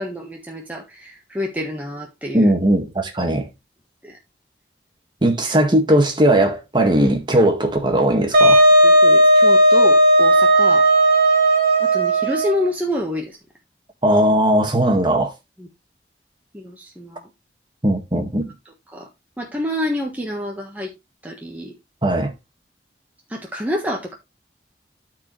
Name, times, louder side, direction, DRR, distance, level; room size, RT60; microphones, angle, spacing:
voice 1, 0.0-2.5 4.0-4.2 8.8-10.9 11.8-13.4 15.6-15.7 16.5-17.3 18.9-19.1 19.4-20.9 21.2-21.7 23.3-24.1, left 1 dB, 10° right, 1.3 m, -28 dB
voice 2, 2.3-3.5 5.2-8.7 14.0-15.3 17.8-18.4 22.0-22.3, right 1 dB, 25° right, 1.8 m, -18 dB
Wind instrument woodwind instrument, 8.3-12.7, right 1 dB, 55° right, 2.2 m, -14 dB
13.0 x 4.8 x 3.2 m
head